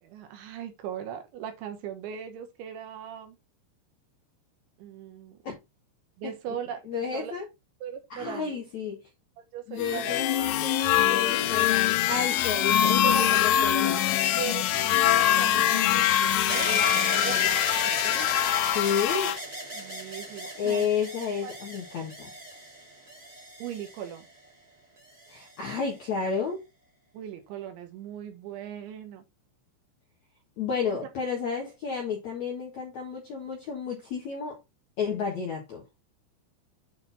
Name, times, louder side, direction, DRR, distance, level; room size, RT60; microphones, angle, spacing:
voice 1, 0.0-3.4 4.8-5.4 6.2-7.4 7.8-8.6 9.4-10.2 13.0-13.5 13.8-14.0 14.4-16.8 17.1-17.5 19.7-20.9 21.4-21.6 23.6-24.3 27.1-29.2, right 9 dB, 75° right, 3.4 m, -39 dB
voice 2, 6.9-7.5 8.1-9.0 9.7-14.0 16.7-16.8 17.1-17.4 18.0-18.3 18.7-19.4 20.6-22.3 25.3-26.6 30.6-34.6 35.0-35.8, left 6 dB, 65° left, 1.9 m, -31 dB
sound 1, 9.8-19.4, left 12 dB, 85° left, 3.2 m, -24 dB
sound 2, 16.5-24.5 25.2-25.9, right 1 dB, 15° right, 1.7 m, -36 dB
9.0 x 4.0 x 4.1 m
omnidirectional pair, 5.6 m